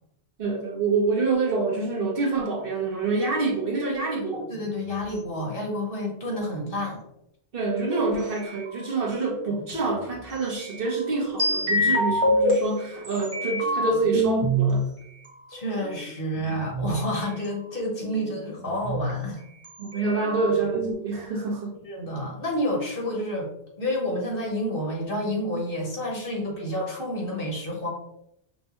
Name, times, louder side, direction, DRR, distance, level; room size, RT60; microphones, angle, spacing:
voice 1, 0.4-4.4 7.5-14.9 19.8-21.8 26.3-26.6, right 3 dB, 60° right, -2 dB, 1.2 m, -27 dB
sound 1, 4.0-4.7 8.4-9.7 10.6-12.5 13.0-14.7 15.5-16.9 17.4-17.5 17.8-19.1 19.6-19.7 19.9-20.9, equal, 30° right, 1.2 m, -26 dB
voice 2, 4.5-7.0 15.5-19.4 21.8-23.5 23.8-27.9, equal, 55° left, -2 dB, 1.4 m, -29 dB
5.9 x 2.2 x 3.0 m, 0.80 s
omnidirectional pair, 1.1 m